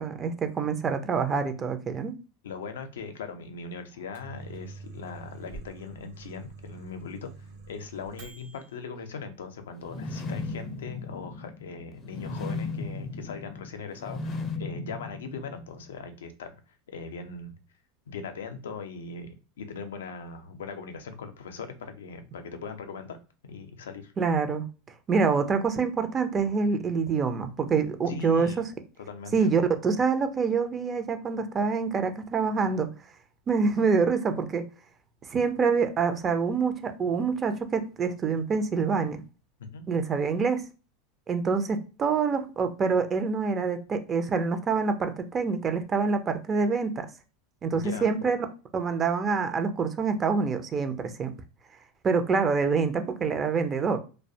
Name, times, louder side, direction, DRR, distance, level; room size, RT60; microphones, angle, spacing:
voice 1, 0.0-2.1 24.2-24.6 25.1-28.5 29.3-32.9 33.5-34.6 35.3-39.2 39.9-40.6 41.3-47.1 47.6-48.5 48.7-51.3 52.0-54.0, right 5 dB, 25° right, 0.4 m, -26 dB
voice 2, 2.4-7.3 7.7-16.5 16.9-17.6 18.1-23.2 23.4-24.1 28.1-28.6 29.0-29.5 39.7-39.8 47.7-48.2, left 5 dB, 90° left, 0.4 m, -40 dB
Microwave oven, 3.9-8.7, right 3 dB, 85° right, 0.9 m, -46 dB
sound 1, 9.8-15.9, left 3 dB, 35° left, 0.4 m, -36 dB
2.4 x 2.1 x 2.6 m
supercardioid pair, 120°, 0 cm